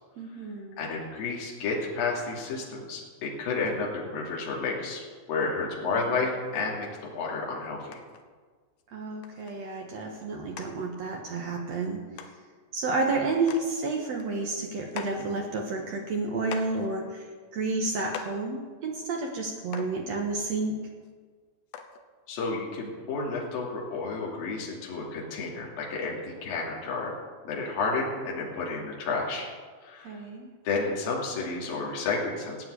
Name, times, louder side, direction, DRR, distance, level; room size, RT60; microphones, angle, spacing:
voice 1, 0.2-0.9 5.8-6.2 8.9-12.0 12.7-20.7 30.0-30.5, right 3 dB, 70° right, 1 dB, 1.6 m, -31 dB
voice 2, 0.8-5.0 5.3-8.0 22.3-27.1 27.4-29.5 29.8-30.2 30.6-32.6, left 4 dB, 55° left, -3 dB, 4.1 m, -31 dB
sound 1, 7.9-8.2 8.8-8.9 9.2-9.6 10.1-10.2 10.6-10.7 11.8-11.9 12.2-12.4 12.9-13.0 13.4-13.6 14.0-15.3 15.9-16.0 16.5-16.9 17.6-17.7 18.1-18.4 19.4-19.5 19.7-20.0 21.0-21.1 21.7-22.0 22.9-23.0, left 8 dB, 80° left, 3.1 m, -42 dB
15.5 x 9.1 x 8.2 m, 1.5 s
omnidirectional pair, 5.1 m